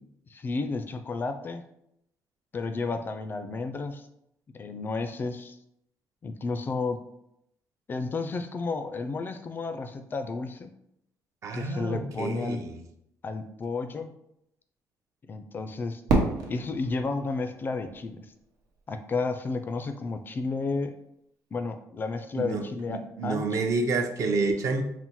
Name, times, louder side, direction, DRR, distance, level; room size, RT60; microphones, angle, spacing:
voice 1, 0.3-1.6 2.5-4.0 4.5-5.6 6.2-7.0 7.9-10.7 11.5-12.6 13.2-14.1 15.3-16.0 16.5-18.2 18.9-20.9 21.5-23.7, left 3 dB, 30° left, 8 dB, 0.3 m, -32 dB
voice 2, 11.4-12.8 22.4-24.8, right 3 dB, 55° right, 4 dB, 0.6 m, -29 dB
Fireworks, 16.1-19.0, right 3 dB, 85° right, 0.8 m, -30 dB
4.1 x 2.0 x 4.4 m, 0.78 s
cardioid pair, 125°, 7 cm